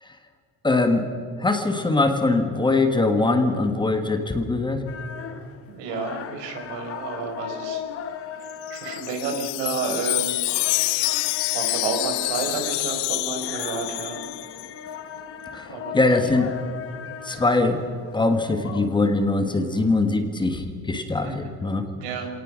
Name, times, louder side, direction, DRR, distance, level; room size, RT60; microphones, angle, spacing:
voice 1, 0.6-1.1 1.4-4.8 15.5-15.7 15.9-16.5 17.2-17.8 18.1-21.9, left 2 dB, 10° left, 6 dB, 1.4 m, -22 dB
sound 1, 4.9-19.9, left 8 dB, 35° left, 1.1 m, -38 dB
voice 2, 5.7-7.8 8.2-10.4 10.9-14.2 15.7-16.0 21.2-21.5 22.0-22.3, right 4 dB, 90° right, 4 dB, 4.8 m, -31 dB
Wind chime, 8.5-14.7, left 25 dB, 75° left, 0.5 m, -27 dB
27.0 x 18.5 x 6.2 m, 2.1 s
cardioid pair, 175°, 40 cm